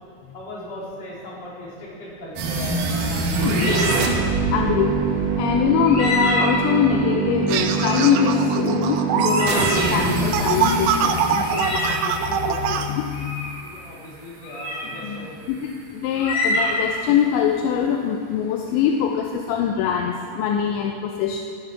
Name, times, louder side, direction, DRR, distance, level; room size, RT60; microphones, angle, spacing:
voice 1, 0.3-4.0 13.6-15.3, left 1 dB, 35° left, -6 dB, 4.3 m, -37 dB
sound 1, 2.4-13.3, right 5 dB, 60° right, 2.3 m, -24 dB
voice 2, 3.4-3.8 4.5-5.0 5.4-13.5 15.0-15.6 15.9-21.4, left 8 dB, 80° left, 3 dB, 2.9 m, -23 dB
sound 2, 3.5-4.1 5.8-6.7 7.7-8.1 8.5-8.6 9.2-10.6 11.4-12.1 13.1-13.6 14.4-14.9 16.2-17.0, left 1 dB, 65° left, 5.6 m, -26 dB
sound 3, 7.5-12.9, right 7 dB, 90° right, 3.3 m, -24 dB
15.0 x 13.0 x 5.8 m, 2.2 s
omnidirectional pair, 5.4 m